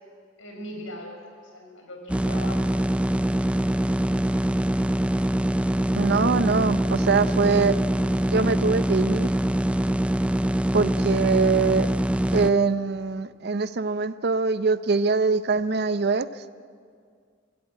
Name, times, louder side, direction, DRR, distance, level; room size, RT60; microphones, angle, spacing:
voice 1, 0.4-2.8, left 1 dB, 80° left, 2 dB, 5.2 m, -40 dB
sound 1, 2.1-12.5, right 1 dB, 5° right, 0.5 m, -24 dB
voice 2, 6.0-7.8 8.2-9.3 10.7-11.9 12.3-16.3, right 4 dB, 55° right, 14 dB, 0.6 m, -23 dB
24.0 x 15.0 x 8.6 m, 2.1 s
head